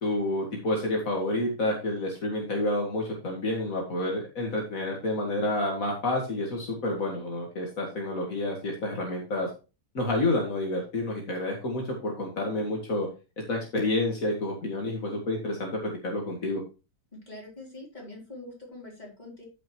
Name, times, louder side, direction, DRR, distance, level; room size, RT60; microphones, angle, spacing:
voice 1, 0.0-9.5 9.9-13.1 13.5-16.6, left 1 dB, 70° left, 0 dB, 2.3 m, -29 dB
voice 2, 17.3-19.5, left 2 dB, 30° left, -3 dB, 4.1 m, -44 dB
13.0 x 5.8 x 3.1 m, 0.31 s
omnidirectional pair, 1.5 m